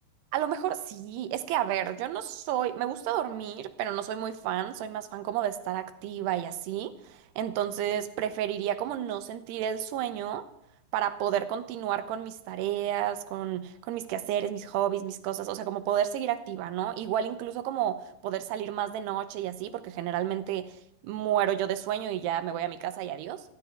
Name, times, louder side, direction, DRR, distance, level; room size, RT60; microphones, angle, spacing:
voice 1, 0.3-10.4 10.9-20.7 21.0-23.4, right 11 dB, 75° right, 10 dB, 2.6 m, -31 dB
27.0 x 11.5 x 3.5 m, 0.78 s
omnidirectional pair, 5.2 m